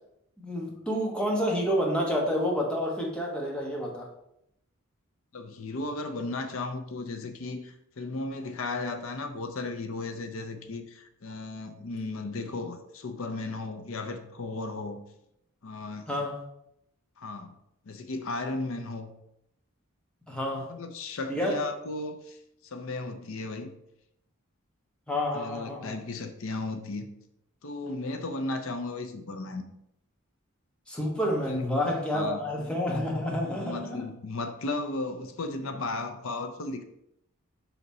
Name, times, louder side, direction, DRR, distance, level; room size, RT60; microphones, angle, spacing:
voice 1, 0.4-4.1 16.1-16.4 20.3-20.7 21.3-21.5 25.1-26.0 30.9-34.1, equal, 5° left, 1.1 m, -29 dB
voice 2, 5.3-15.0 15.6-16.0 17.2-17.6 17.9-19.1 20.7-22.4 22.6-23.7 25.3-27.1 27.6-29.6 31.5-31.7 32.1-32.4 33.5-36.8, left 2 dB, 70° left, 0.6 m, -35 dB
5.8 x 3.9 x 4.1 m
head